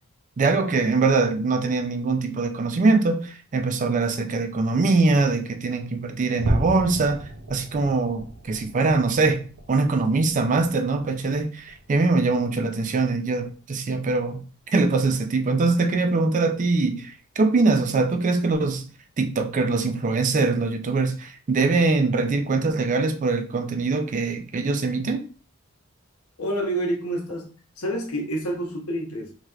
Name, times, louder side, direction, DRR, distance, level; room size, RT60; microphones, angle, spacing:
voice 1, 0.4-7.2 7.5-9.4 9.7-14.4 14.7-18.8 19.2-25.2, right 3 dB, 35° right, 0.4 m, -22 dB
sound 1, 6.4-13.0 13.4-13.7 14.1-14.2 14.8-14.9, right 1 dB, 90° right, 0.6 m, -35 dB
voice 2, 26.4-27.5 27.8-29.3, right 1 dB, 90° left, 0.9 m, -28 dB
3.1 x 2.9 x 2.3 m
head